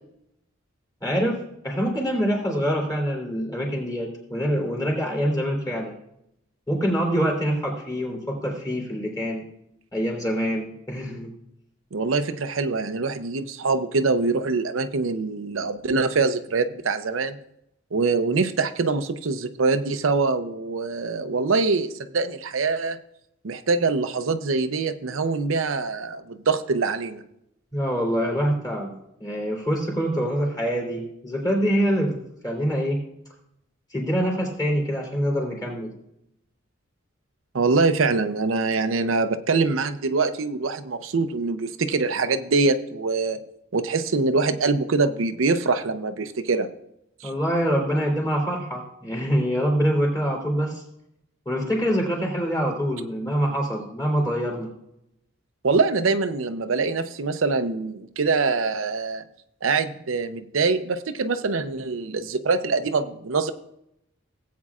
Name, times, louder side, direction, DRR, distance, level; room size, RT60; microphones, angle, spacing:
voice 1, 1.0-5.9 6.7-9.4 9.9-11.3 27.7-28.9 29.2-32.2 32.4-33.0 33.9-35.9 47.2-50.8 51.4-54.7, equal, 20° left, 0 dB, 3.1 m, -25 dB
voice 2, 11.9-17.4 17.9-23.0 23.4-27.2 37.5-43.4 43.7-46.7 47.2-47.3 55.6-59.2 59.6-63.5, right 4 dB, 85° right, 8 dB, 0.6 m, -24 dB
17.5 x 8.4 x 2.4 m, 0.80 s
head